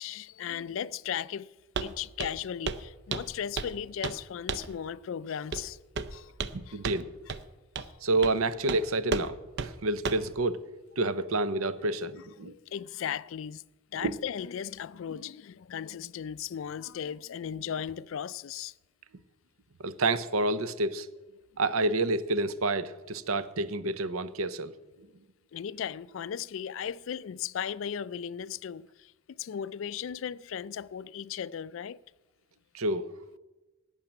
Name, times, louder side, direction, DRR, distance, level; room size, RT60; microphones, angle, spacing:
voice 1, 0.0-1.5 1.8-5.8 6.1-6.3 6.7-6.8 12.5-13.6 13.9-18.7 25.5-32.0, left 8 dB, 65° left, 0.3 m, -36 dB
Walk footsteps, 1.8-1.9 2.2-2.4 2.7-2.8 3.1-3.8 4.0-4.2 4.5-4.7 5.5-5.7 6.0-6.6 6.8-7.0 7.3-7.4 7.8-7.9 8.2-8.4 8.7-8.8 9.1-9.3 9.6-9.7 10.1-10.3, right 4 dB, 55° right, 0.6 m, -33 dB
voice 2, 6.5-7.1 8.0-10.6 11.0-12.5 14.0-14.1 19.8-21.1 21.6-24.7 32.7-33.1, right 2 dB, 85° right, 0.8 m, -29 dB
11.5 x 7.4 x 9.1 m
head